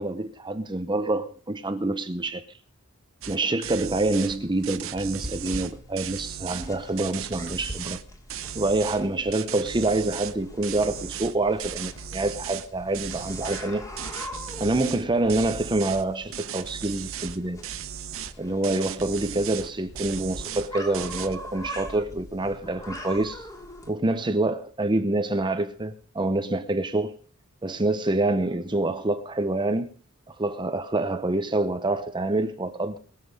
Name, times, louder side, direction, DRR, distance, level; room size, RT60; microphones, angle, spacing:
voice 1, 0.0-2.4 3.3-8.0 8.5-13.9 14.6-17.6 18.4-23.4 23.9-27.2 27.6-29.9 30.3-33.0, right 2 dB, 20° right, 0.8 m, -26 dB
sound 1, 3.2-3.4 3.6-4.4 4.6-6.7 7.0-8.0 8.3-9.0 9.3-10.3 10.6-12.7 12.9-13.7 14.0-15.0 15.3-16.0 16.3-17.4 17.6-18.3 18.6-19.7 20.0-20.7 20.9-21.4, right 9 dB, 65° right, 0.9 m, -36 dB
sound 2, 4.0-23.9, equal, 15° left, 2.3 m, -42 dB
22.0 x 7.7 x 5.0 m
head